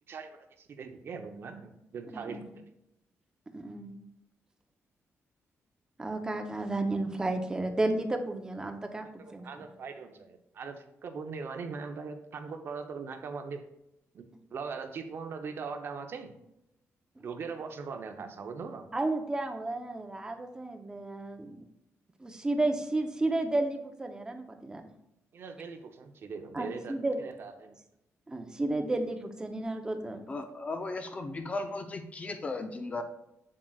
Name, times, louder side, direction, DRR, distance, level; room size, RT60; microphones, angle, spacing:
voice 1, 0.1-2.6 9.2-13.6 14.1-14.2 14.5-16.3 17.2-18.9 25.3-27.8, right 5 dB, 50° right, 6 dB, 0.7 m, -40 dB
voice 2, 3.5-4.0 6.0-9.7 18.9-21.6 22.2-24.8 26.5-27.2 28.3-30.4, right 2 dB, 15° right, 5 dB, 0.7 m, -32 dB
voice 3, 30.3-33.0, left 3 dB, 25° left, 7 dB, 0.5 m, -36 dB
7.6 x 7.4 x 2.3 m, 0.83 s
wide cardioid pair, 170°, 5 cm